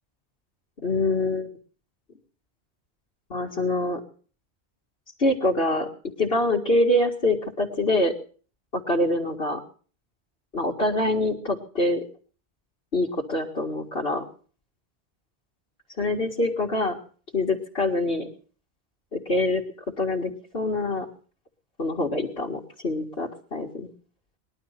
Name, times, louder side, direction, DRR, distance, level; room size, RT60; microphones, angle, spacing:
voice 1, 0.8-1.5 3.3-4.0 5.2-5.9 6.2-8.1 8.7-9.6 10.5-12.0 12.9-14.3 16.0-17.0 17.3-18.3 19.1-19.6 20.0-21.1 21.8-23.9, left 1 dB, 65° left, -4 dB, 2.3 m, -25 dB
21.0 x 11.5 x 5.8 m, 0.42 s
omnidirectional pair, 1.1 m